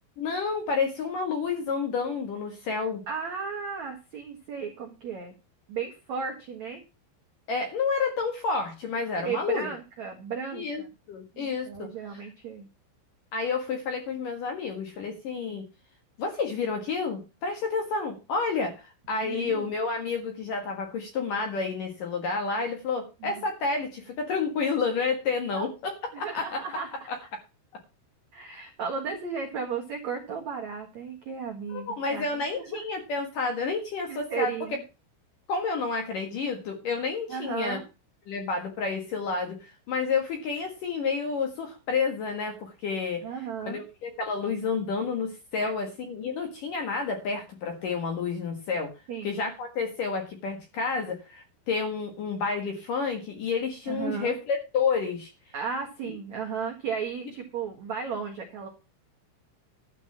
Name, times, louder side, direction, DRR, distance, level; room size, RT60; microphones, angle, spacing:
voice 1, 0.2-3.0 7.5-9.7 10.5-12.2 13.3-15.6 16.2-26.6 27.1-27.2 31.7-34.5 35.5-37.8 38.3-43.2 43.6-48.9 49.2-55.3, left 4 dB, 55° left, 4 dB, 2.5 m, -30 dB
voice 2, 3.1-5.3 5.7-6.8 9.2-10.9 11.3-12.7 19.2-19.7 23.2-23.3 25.5-25.7 26.1-26.9 28.3-32.3 32.7-32.8 34.1-34.8 37.3-37.8 43.2-43.8 45.6-45.7 49.1-49.4 53.9-54.4 55.5-58.7, right 6 dB, 85° right, 1 dB, 1.6 m, -34 dB
12.0 x 5.5 x 7.3 m, 0.29 s
omnidirectional pair, 6.0 m